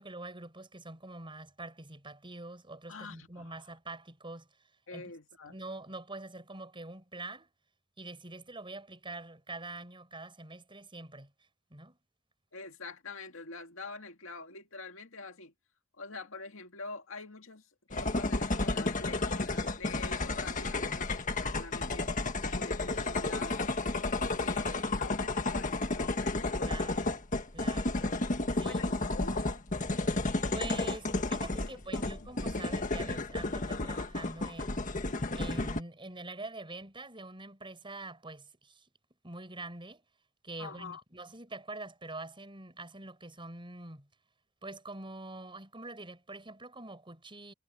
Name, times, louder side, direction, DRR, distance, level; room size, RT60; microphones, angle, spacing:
voice 1, 0.0-4.5 4.9-5.1 5.5-7.5 8.0-11.3 11.7-12.0 20.7-21.0 26.6-27.2 27.5-28.1 28.5-29.3 30.5-35.0 35.3-38.9 39.2-40.0 40.4-44.1 44.6-47.5, right 2 dB, 25° right, 7.9 m, -45 dB
voice 2, 2.9-3.6 4.9-5.5 12.5-15.5 16.0-21.1 21.4-22.1 22.4-23.6 24.0-27.1 28.6-29.5 31.6-32.3 40.6-41.0, left 3 dB, 75° left, 2.2 m, -46 dB
sound 1, 17.9-35.8, left 2 dB, 40° left, 1.7 m, -32 dB
head